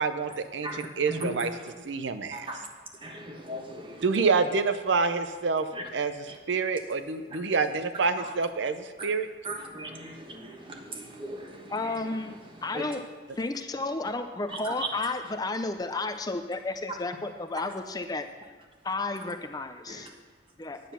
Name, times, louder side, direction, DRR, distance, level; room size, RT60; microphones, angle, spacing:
voice 1, 0.0-1.5 1.8-2.5 4.0-5.7 5.9-6.1 6.5-9.3, right 4 dB, 75° right, 10 dB, 0.6 m, -27 dB
voice 2, 0.6-1.7 2.3-2.6 3.0-4.2 5.7-5.9 6.3-6.4 7.3-7.4 8.2-8.3 9.4-11.9 12.7-12.9 14.5-14.9 19.9-20.1, right 1 dB, 25° right, 3 dB, 1.2 m, -38 dB
voice 3, 11.7-13.1 13.4-18.3 18.8-20.1 20.6-20.8, left 3 dB, 20° left, 8 dB, 0.5 m, -32 dB
9.3 x 9.1 x 5.7 m, 1.4 s
head